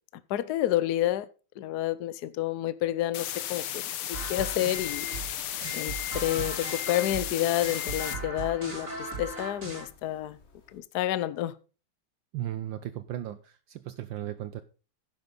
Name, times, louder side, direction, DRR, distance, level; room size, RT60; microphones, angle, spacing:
voice 1, 0.3-1.3 1.6-3.8 4.1-5.1 5.7-10.4 10.7-11.5, left 13 dB, 65° left, 1.0 m, -29 dB
sound 1, 3.1-8.1, left 11 dB, 85° left, 1.8 m, -35 dB
sound 2, 4.1-9.9, right 3 dB, 35° right, 4.9 m, -38 dB
sound 3, 4.7-10.8, left 12 dB, 35° left, 1.5 m, -44 dB
voice 2, 12.3-14.6, right 12 dB, 70° right, 1.3 m, -36 dB
10.5 x 10.5 x 3.8 m
omnidirectional pair, 2.3 m